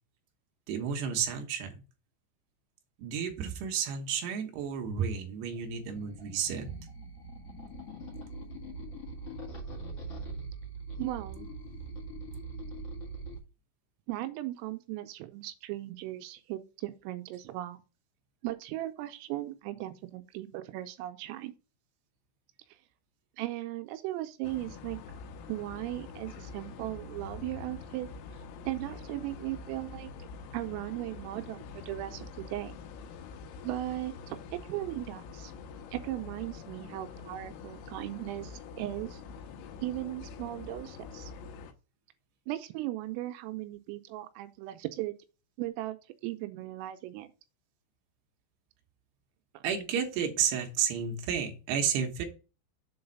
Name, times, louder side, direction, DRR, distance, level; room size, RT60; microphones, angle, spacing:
voice 1, 0.7-1.8 3.0-6.7 49.6-52.3, right 7 dB, 70° right, 2.8 m, -31 dB
sound 1, 5.5-13.4, right 2 dB, 65° left, 1.5 m, -42 dB
voice 2, 11.0-11.5 14.1-17.8 18.4-21.5 23.4-25.0 25.5-28.1 28.6-30.1 30.5-32.7 33.6-35.5 35.9-39.2 39.8-41.3 42.5-45.2 45.6-46.0 46.2-47.3 49.5-49.6, right 16 dB, 85° right, 3.2 m, -37 dB
sound 2, 24.4-41.7, left 5 dB, 85° left, 3.7 m, -45 dB
7.7 x 3.9 x 5.3 m
omnidirectional pair, 6.0 m